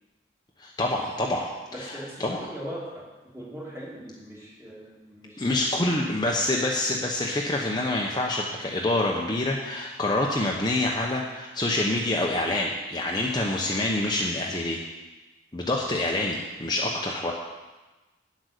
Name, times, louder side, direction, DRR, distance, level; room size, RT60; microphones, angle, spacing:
voice 1, 0.6-2.4 5.4-14.8 15.5-17.3, left 2 dB, 25° left, -1 dB, 0.9 m, -26 dB
voice 2, 1.7-6.0, equal, 15° right, -4 dB, 2.4 m, -40 dB
9.5 x 8.1 x 6.6 m, 1.2 s
head